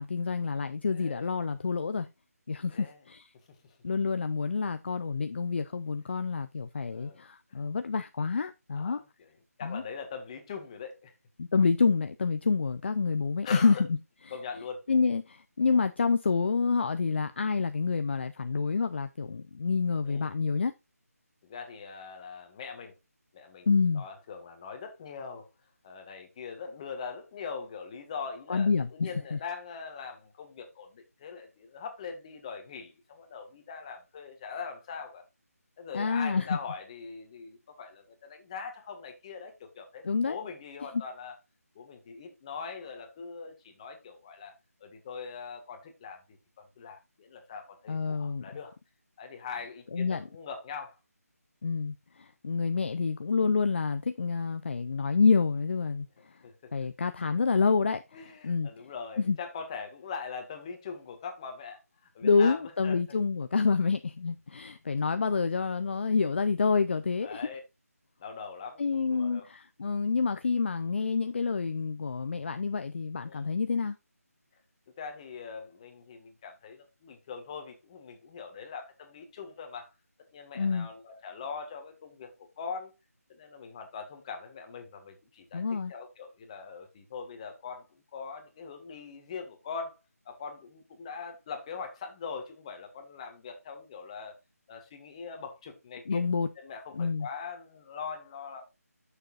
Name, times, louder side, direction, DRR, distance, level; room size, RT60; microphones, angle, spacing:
voice 1, 0.0-2.1 2.5-3.3 3.8-9.0 9.6-9.8 11.4-13.8 14.9-20.7 23.7-24.0 28.5-29.4 35.9-36.6 40.0-40.4 47.9-48.5 49.9-50.3 51.6-56.1 56.7-58.7 59.2-59.4 62.2-67.4 68.8-74.0 80.6-80.9 85.5-85.9 96.1-96.5 96.9-97.3, left 5 dB, 45° left, 0.6 m, -28 dB
voice 2, 0.9-1.3 2.7-3.0 3.6-3.8 6.9-7.2 7.5-7.6 8.8-9.3 9.6-11.1 13.4-13.8 14.3-14.8 20.0-20.3 21.4-22.9 23.3-23.7 23.9-25.5 25.8-35.2 35.8-41.4 41.8-44.5 44.8-48.7 49.2-51.0 56.4-56.7 58.1-61.8 62.1-63.0 67.2-67.6 68.2-69.5 73.3-73.5 75.0-79.9 80.3-82.9 83.3-85.6 85.9-90.0 90.3-94.3 94.7-96.2 96.6-98.7, left 5 dB, 25° left, 1.7 m, -42 dB
11.0 x 6.7 x 2.5 m
figure-of-eight pair, 160°, 9 cm